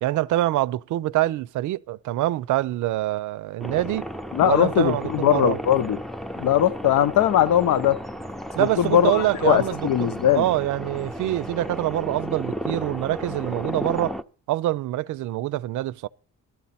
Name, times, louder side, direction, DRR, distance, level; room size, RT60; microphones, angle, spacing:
voice 1, 0.0-4.1 4.4-5.6 8.6-10.1 10.3-14.2 14.5-16.1, right 15 dB, 75° right, 0.5 m, -25 dB
sound 1, 3.6-14.2, equal, ahead, 0.5 m, -34 dB
voice 2, 4.3-6.0 6.4-8.0 8.6-10.4, left 10 dB, 75° left, 0.9 m, -20 dB
13.5 x 12.0 x 4.2 m
cardioid pair, 90°, 30 cm